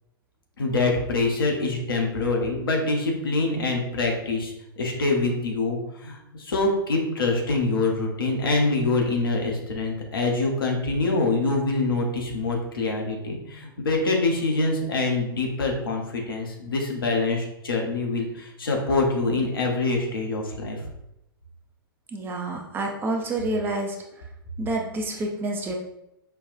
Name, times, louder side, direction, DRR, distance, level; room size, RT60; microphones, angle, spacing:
voice 1, 0.6-20.8, left 3 dB, 70° left, 0 dB, 0.9 m, -25 dB
voice 2, 22.1-24.0 24.6-25.7, right 2 dB, 15° right, 1 dB, 0.6 m, -28 dB
5.5 x 2.3 x 2.5 m, 0.84 s
figure-of-eight pair, 100°, 12 cm